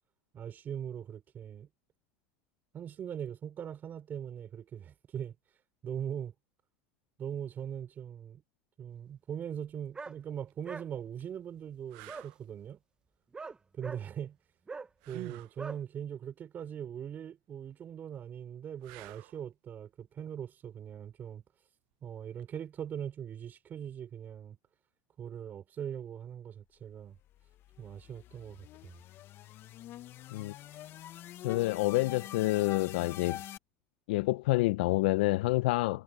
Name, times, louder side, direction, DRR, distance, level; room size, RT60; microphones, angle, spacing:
voice 1, 0.3-1.7 2.7-5.3 5.8-6.3 7.2-8.4 8.8-12.8 13.7-14.4 15.1-21.4 22.0-24.6 25.2-27.2 27.8-29.0, right 9 dB, 35° right, 4.6 m, -41 dB
sound 1, 9.9-10.2 10.6-10.9 12.1-12.3 13.3-14.0 14.7-14.9 15.6-15.8, right 4 dB, 15° right, 1.0 m, -41 dB
sound 2, 10.3-10.5 11.2-11.3 11.9-12.4 15.0-15.6 18.8-19.4 22.4-22.6, right 24 dB, 70° right, 0.8 m, -47 dB
sound 3, 27.2-33.6, left 12 dB, 50° left, 0.8 m, -46 dB
voice 2, 31.4-33.4 34.1-36.0, left 19 dB, 80° left, 0.6 m, -28 dB
supercardioid pair, 110°, 5 cm